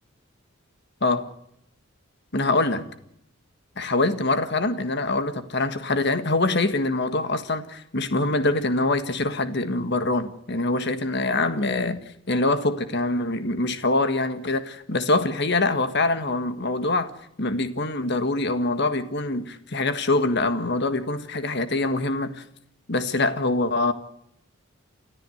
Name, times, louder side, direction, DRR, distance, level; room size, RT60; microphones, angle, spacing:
voice 1, 2.3-2.9 3.8-17.1 17.4-22.4 22.9-23.9, left 2 dB, 50° left, 10 dB, 1.6 m, -24 dB
29.5 x 13.0 x 7.9 m, 0.76 s
head